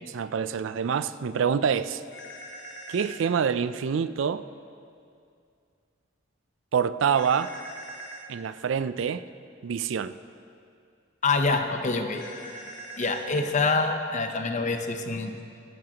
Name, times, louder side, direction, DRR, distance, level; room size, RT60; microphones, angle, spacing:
voice 1, 0.1-2.0 2.9-4.4 6.7-7.5 8.3-9.2 9.6-10.1, right 7 dB, 70° right, 14 dB, 0.4 m, -26 dB
sound 1, 2.1-3.2 7.1-8.3 12.1-13.3, right 1 dB, 60° left, 1.3 m, -42 dB
voice 2, 11.2-12.2 13.0-15.4, left 3 dB, 40° left, 5 dB, 0.8 m, -26 dB
16.5 x 13.5 x 2.9 m, 2.4 s
head